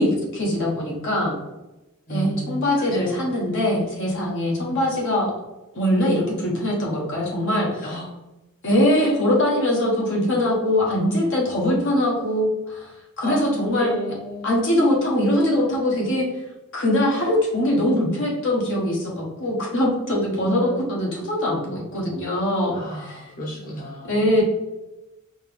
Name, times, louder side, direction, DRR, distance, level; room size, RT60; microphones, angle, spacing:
voice 1, 0.0-1.4 2.1-5.3 5.7-7.8 8.6-12.9 13.2-13.9 14.4-16.3 16.7-22.8 23.0-23.1 24.1-24.4, left 1 dB, 60° left, -3 dB, 1.2 m, -22 dB
voice 2, 2.1-3.2 4.6-4.8 7.8-8.0 8.9-9.3 13.2-14.5 20.4-20.8 22.7-24.4, equal, 40° left, -5 dB, 1.1 m, -33 dB
4.4 x 2.9 x 3.5 m, 1.0 s
head